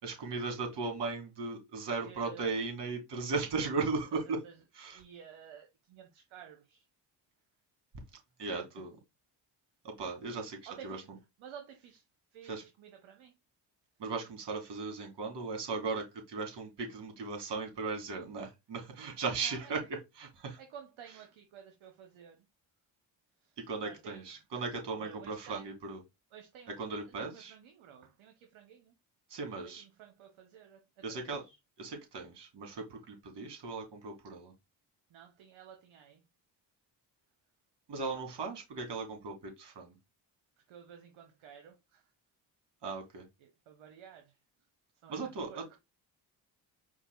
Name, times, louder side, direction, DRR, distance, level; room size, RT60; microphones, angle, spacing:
voice 1, 0.0-4.4 4.7-5.0 8.4-9.0 9.8-10.6 10.8-11.0 12.5-12.6 14.0-19.8 20.2-20.6 23.7-26.0 26.8-27.5 29.3-29.8 31.0-31.4 31.8-34.5 37.9-39.9 42.8-43.2 45.1-45.8, right 4 dB, 55° right, 2.6 m, -37 dB
voice 2, 2.0-2.6 4.1-4.6 4.8-6.8 10.7-11.1 11.4-12.0 12.3-13.3 19.4-19.7 20.6-22.5 23.4-23.6 23.8-24.2 24.9-25.8 26.3-28.9 29.8-31.6 35.1-36.2 40.7-42.0 43.4-44.4 45.0-45.8, right 8 dB, 70° right, 1.1 m, -53 dB
4.6 x 2.4 x 4.6 m
supercardioid pair, 50°, 49 cm